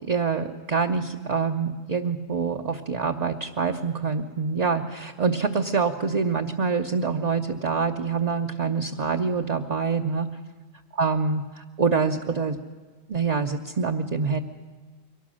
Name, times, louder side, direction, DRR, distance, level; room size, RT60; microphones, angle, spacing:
voice 1, 0.0-10.3 11.0-12.6 13.1-14.4, right 5 dB, 40° right, 3 dB, 0.8 m, -25 dB
23.0 x 18.0 x 6.4 m, 1.4 s
omnidirectional pair, 1.1 m